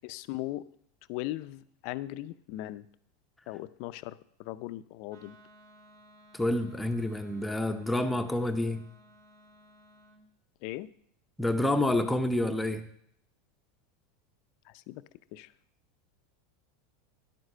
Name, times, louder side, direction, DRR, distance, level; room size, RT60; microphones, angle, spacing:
voice 1, 0.0-0.6 1.1-2.9 3.5-5.4 10.6-10.9 14.7-15.0 15.3-15.5, left 16 dB, 60° left, 14 dB, 0.5 m, -38 dB
Wind instrument woodwind instrument, 5.1-10.2, equal, 60° right, 1.9 m, -58 dB
voice 2, 6.3-8.8 11.4-12.9, left 1 dB, 5° left, 6 dB, 0.8 m, -28 dB
11.0 x 8.0 x 5.5 m, 0.69 s
supercardioid pair, 115°, 0 cm